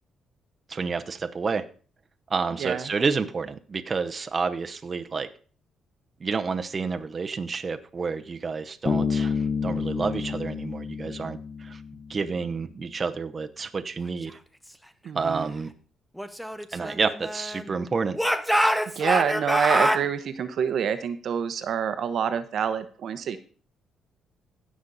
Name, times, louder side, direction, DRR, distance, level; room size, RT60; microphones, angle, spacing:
voice 1, 0.7-1.6 2.3-5.3 6.2-11.8 12.1-14.4 15.1-15.7 16.7-18.2, right 4 dB, 35° right, 7 dB, 0.8 m, -29 dB
voice 2, 2.6-2.9 15.0-15.5 19.0-23.4, right 7 dB, 65° right, 10 dB, 0.9 m, -27 dB
Bass guitar, 8.9-12.3, left 5 dB, 30° left, 1.3 m, -29 dB
Speech / Shout, 16.2-17.7 18.1-20.0, equal, ahead, 0.9 m, -25 dB
16.5 x 6.3 x 4.1 m, 0.40 s
cardioid pair, 90°, 0 cm